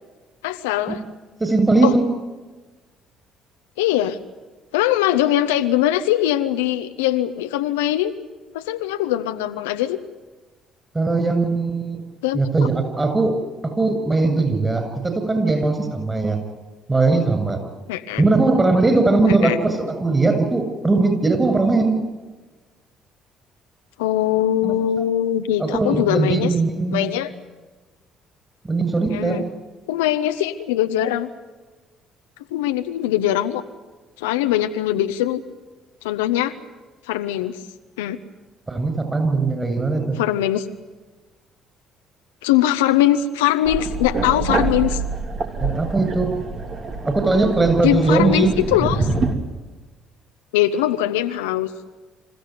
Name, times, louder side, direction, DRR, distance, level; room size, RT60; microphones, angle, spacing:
voice 1, 0.4-1.0 1.8-1.9 3.8-4.2 4.7-8.1 8.5-10.0 12.2-12.4 17.9-18.2 19.3-19.6 24.0-26.5 26.9-27.3 29.1-29.4 29.9-31.3 32.5-33.6 34.2-35.4 36.0-36.5 37.1-37.5 38.0-38.2 40.2-40.7 42.4-45.0 47.8-49.1 50.5-51.7, left 12 dB, 80° left, 8 dB, 1.0 m, -21 dB
voice 2, 1.4-2.0 10.9-12.0 12.3-13.3 13.6-16.4 16.9-17.6 18.2-21.9 24.6-25.0 25.6-27.1 28.6-29.4 38.7-40.2 45.6-46.3 47.0-48.6, right 3 dB, 20° right, 8 dB, 7.9 m, -19 dB
sound 1, 43.6-49.3, right 3 dB, 50° right, 3.4 m, -26 dB
27.0 x 15.0 x 9.5 m, 1.2 s
hypercardioid pair, 55°, 0 cm